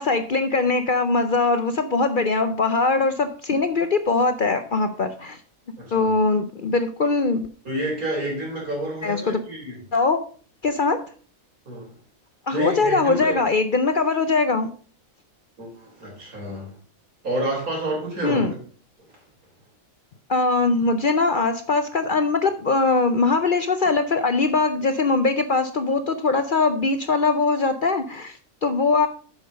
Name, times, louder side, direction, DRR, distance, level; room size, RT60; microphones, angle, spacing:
voice 1, 0.0-5.4 5.9-7.5 9.0-9.4 9.9-10.2 10.6-11.0 12.5-14.7 18.2-18.5 20.3-29.1, left 3 dB, 50° left, 9 dB, 0.6 m, -21 dB
voice 2, 5.8-6.1 7.6-9.8 11.7-11.9 12.5-13.4 15.6-16.7 17.2-18.6, right 1 dB, 85° right, -2 dB, 4.3 m, -29 dB
8.1 x 6.1 x 5.2 m, 0.42 s
omnidirectional pair, 1.5 m